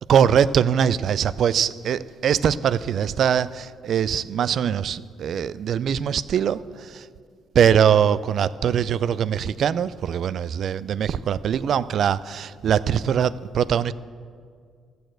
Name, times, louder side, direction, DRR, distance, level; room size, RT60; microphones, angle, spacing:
voice 1, 0.1-7.1 7.5-13.9, right 8 dB, 65° right, 17 dB, 0.4 m, -22 dB
14.0 x 6.6 x 7.7 m, 2.1 s
cardioid pair, 90°, 0 cm